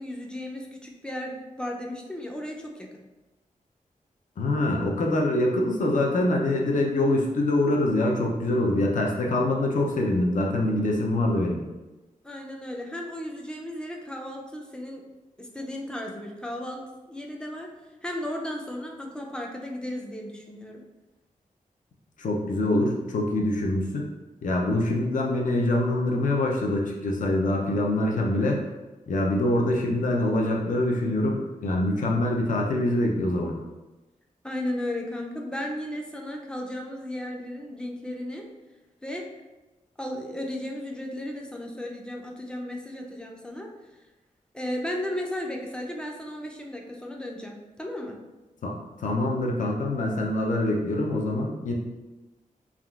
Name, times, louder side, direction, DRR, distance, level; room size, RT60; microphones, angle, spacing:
voice 1, 0.0-2.9 12.2-15.0 15.4-17.7 18.0-20.8 34.4-38.4 39.0-39.3 40.0-43.7 44.5-48.2, left 1 dB, 5° left, 0 dB, 0.4 m, -35 dB
voice 2, 4.4-11.6 22.2-24.1 24.4-28.6 29.1-33.5 48.6-48.7 49.0-51.7, left 1 dB, 65° left, -1 dB, 0.5 m, -24 dB
3.5 x 2.3 x 2.3 m, 1.1 s
wide cardioid pair, 130°, 14 cm